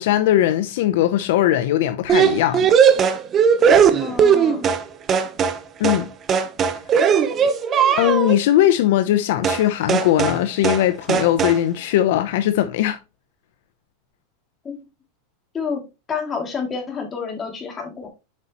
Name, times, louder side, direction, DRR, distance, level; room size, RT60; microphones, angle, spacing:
voice 1, 0.0-2.7 5.8-6.1 8.0-13.0, left 12 dB, 70° left, 0.7 m, -19 dB
sound 1, 2.1-4.8 5.1-5.6 5.8-6.0 6.3-8.4 9.4-9.6 9.9-10.4 10.6-10.8 11.1-11.6, right 7 dB, 30° right, 0.8 m, -17 dB
voice 2, 4.0-4.7 14.6-14.8 15.5-15.8 16.1-18.1, left 5 dB, 20° left, 2.5 m, -29 dB
7.4 x 5.3 x 3.0 m
supercardioid pair, 140°, 0 cm